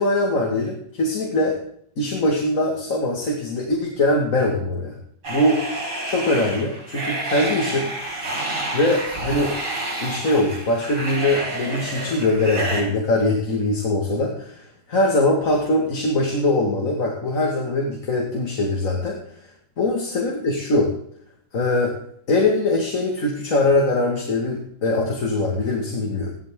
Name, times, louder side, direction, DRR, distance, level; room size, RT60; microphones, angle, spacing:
voice 1, 0.0-1.6 2.0-5.0 5.3-5.6 6.1-7.9 8.7-9.5 10.0-19.2 19.8-20.9 21.5-21.9 22.3-26.3, left 2 dB, 50° left, 0 dB, 2.4 m, -22 dB
sound 1, 5.2-12.8, right 2 dB, 80° right, 5.0 m, -29 dB
15.5 x 12.5 x 3.7 m, 0.66 s
omnidirectional pair, 1.8 m